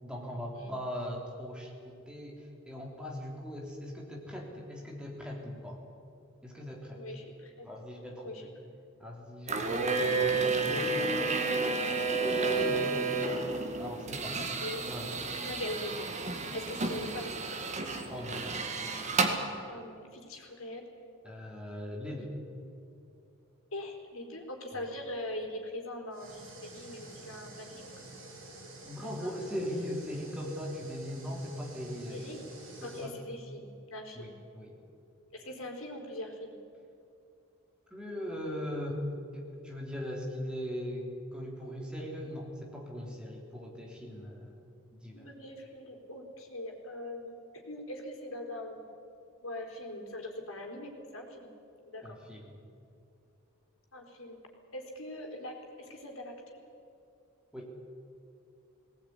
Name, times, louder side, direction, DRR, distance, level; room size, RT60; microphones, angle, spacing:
voice 1, 0.0-5.8 6.4-7.0 7.6-8.5 9.0-11.5 12.2-13.0 13.7-14.4 14.8-15.1 18.1-18.5 21.2-22.3 24.7-24.9 28.8-32.5 32.8-33.2 34.1-34.8 37.9-39.0 39.3-44.6 45.0-45.3 52.0-52.6 57.5-57.7, equal, 5° right, -1 dB, 3.3 m, -39 dB
voice 2, 6.9-7.7 8.2-8.4 14.3-14.9 15.4-16.1 16.5-17.6 19.7-20.8 23.7-27.9 29.2-29.3 32.1-32.4 32.8-34.4 35.3-36.6 45.1-48.9 49.4-51.5 51.9-52.0 53.9-54.4 54.7-56.6, left 1 dB, 75° left, 1 dB, 4.3 m, -42 dB
sound 1, 9.5-19.3, right 3 dB, 35° right, 2.1 m, -31 dB
sound 2, 26.1-33.1, right 2 dB, 70° right, 6.2 m, -49 dB
19.0 x 19.0 x 9.7 m, 2.5 s
head